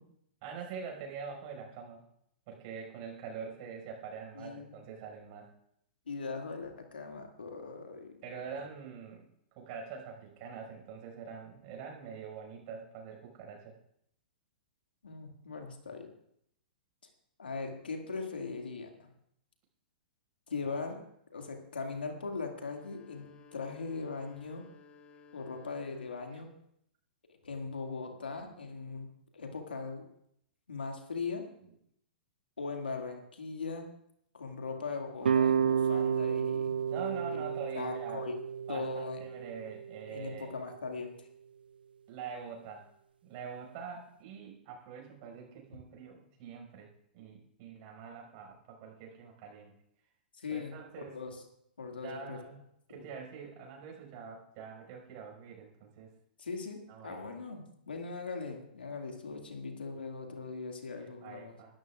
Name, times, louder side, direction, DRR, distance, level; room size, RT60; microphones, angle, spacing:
voice 1, 0.4-2.0 2.5-5.5 8.2-9.3 9.6-13.7 20.6-20.9 36.9-38.2 38.7-40.5 42.1-42.9 43.2-49.7 50.5-51.1 52.0-52.6 52.9-56.1 56.9-57.4 60.9-61.8, right 6 dB, 45° right, 1 dB, 5.5 m, -45 dB
voice 2, 4.3-4.8 6.1-8.6 15.0-16.1 17.4-19.1 20.5-21.0 21.3-24.6 25.3-26.5 27.4-29.1 29.3-30.1 30.7-31.4 32.6-33.9 34.3-36.7 37.3-38.4 38.7-39.2 40.1-41.3 50.4-51.4 51.8-52.4 52.9-53.1 56.4-61.6, left 4 dB, 85° left, 3 dB, 2.1 m, -40 dB
sound 1, 22.6-26.6, left 4 dB, 25° left, 1.9 m, -58 dB
sound 2, 35.2-40.3, right 7 dB, 80° right, 0.4 m, -31 dB
21.0 x 13.0 x 2.4 m, 0.73 s
hypercardioid pair, 115°, 5 cm